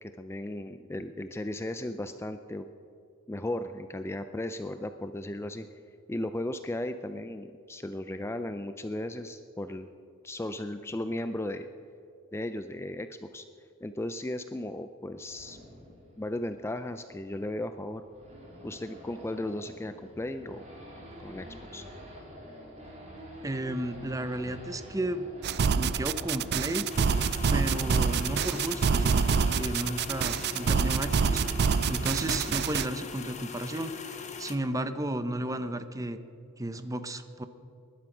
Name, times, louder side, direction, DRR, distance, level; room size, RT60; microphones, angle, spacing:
voice 1, 0.0-2.7 3.3-5.7 6.1-9.9 10.2-11.7 12.3-13.4 13.8-15.6 16.2-18.0 18.6-20.6 21.2-21.5 21.7-21.8, left 1 dB, 10° left, 9 dB, 0.4 m, -36 dB
Race car auto racing / Idling / Accelerating revving vroom, 15.3-31.9, equal, 30° right, 3.9 m, -46 dB
voice 2, 23.4-25.3 25.8-26.9 27.5-31.4 31.9-36.2 36.6-37.4, right 1 dB, 15° right, 10 dB, 0.7 m, -33 dB
sound 1, 25.4-32.9, right 5 dB, 50° right, 0.4 m, -26 dB
sound 2, 26.9-34.5, left 6 dB, 35° left, 1.2 m, -41 dB
20.5 x 11.5 x 6.1 m, 2.5 s
head